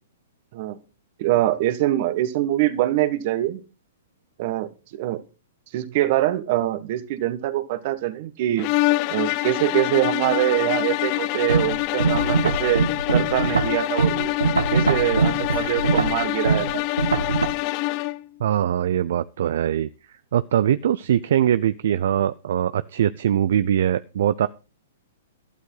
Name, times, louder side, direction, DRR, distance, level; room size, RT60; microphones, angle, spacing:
voice 1, 1.2-3.6 4.4-5.2 5.7-8.7 9.1-14.3 14.7-16.8, right 14 dB, 50° right, 13 dB, 1.6 m, -24 dB
sound 1, 8.6-18.3, left 20 dB, 40° left, 0.6 m, -26 dB
sound 2, 11.5-17.5, right 4 dB, 90° right, 1.6 m, -22 dB
voice 2, 18.4-19.9 20.3-24.5, right 10 dB, 65° right, 16 dB, 0.6 m, -22 dB
12.5 x 12.5 x 4.0 m, 0.33 s
hypercardioid pair, 120°, 0 cm